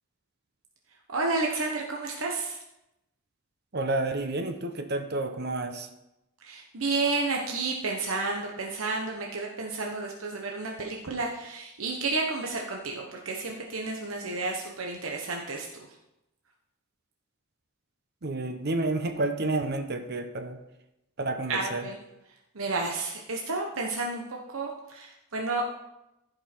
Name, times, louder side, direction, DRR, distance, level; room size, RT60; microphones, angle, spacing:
voice 1, 1.1-2.6 6.4-15.9 21.5-22.0 22.5-25.6, right 3 dB, 80° right, 0 dB, 1.1 m, -31 dB
voice 2, 3.7-5.9 18.2-20.6 21.2-21.9, right 2 dB, 50° right, 7 dB, 0.8 m, -30 dB
14.5 x 5.4 x 4.5 m, 0.90 s
head